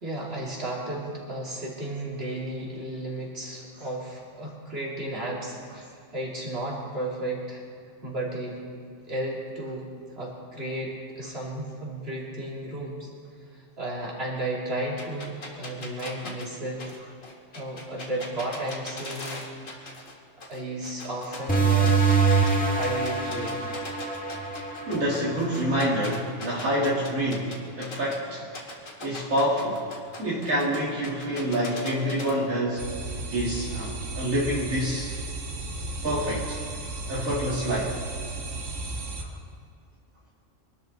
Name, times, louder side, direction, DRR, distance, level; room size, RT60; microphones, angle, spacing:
voice 1, 0.0-7.6 8.0-8.6 9.0-13.1 13.5-16.9 17.5-19.5 20.5-22.0 22.7-23.6, right 1 dB, 50° right, -4 dB, 3.3 m, -34 dB
sound 1, 15.0-20.1 20.4-22.5 22.8-28.2 28.5-32.3, left 2 dB, 80° left, 2.2 m, -40 dB
sound 2, 21.5-26.7, right 4 dB, 5° left, 1.7 m, -25 dB
voice 2, 24.9-28.5 29.0-29.9 30.2-32.8 33.3-35.1 36.0-36.6 37.1-38.0, equal, 85° right, -5 dB, 2.6 m, -27 dB
sound 3, 32.8-39.2, right 2 dB, 70° right, 1.6 m, -35 dB
23.5 x 12.5 x 4.0 m, 2.3 s
omnidirectional pair, 1.4 m